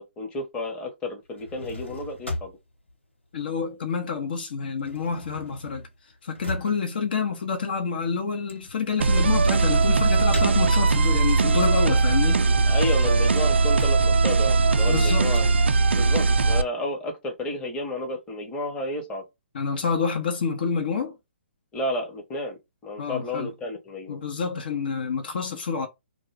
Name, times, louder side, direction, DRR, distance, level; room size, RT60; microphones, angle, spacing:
voice 1, 0.0-2.6 12.7-15.5 15.9-19.2 21.7-24.2, left 2 dB, 15° left, 0.9 m, -32 dB
sound 1, 1.2-4.1 4.4-11.2 11.6-15.2, left 2 dB, 85° left, 1.1 m, -39 dB
voice 2, 3.3-5.8 6.2-12.4 14.9-15.3 19.5-21.1 23.0-23.5 24.1-25.9, left 5 dB, 50° left, 0.6 m, -28 dB
sound 2, 9.0-16.6, right 3 dB, 70° right, 0.3 m, -20 dB
2.5 x 2.2 x 3.2 m
figure-of-eight pair, 130°, 6 cm